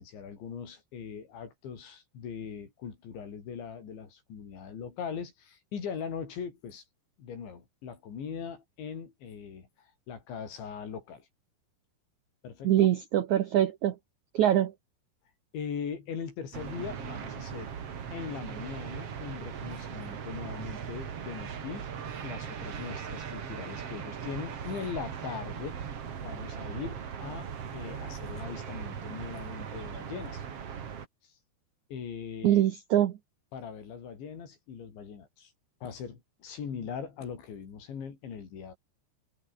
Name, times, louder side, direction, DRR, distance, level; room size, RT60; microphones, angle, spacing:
voice 1, 0.0-6.8 7.2-11.3 12.4-12.9 15.5-17.7 18.1-21.9 22.2-25.8 26.2-30.4 31.9-32.6 33.5-35.5 35.8-38.8, left 7 dB, 80° left, 7.0 m, -40 dB
voice 2, 12.6-14.0 14.3-14.7 32.4-33.2, right 11 dB, 80° right, 1.7 m, -24 dB
sound 1, 16.5-31.1, right 7 dB, 45° right, 2.4 m, -39 dB
omnidirectional pair, 5.1 m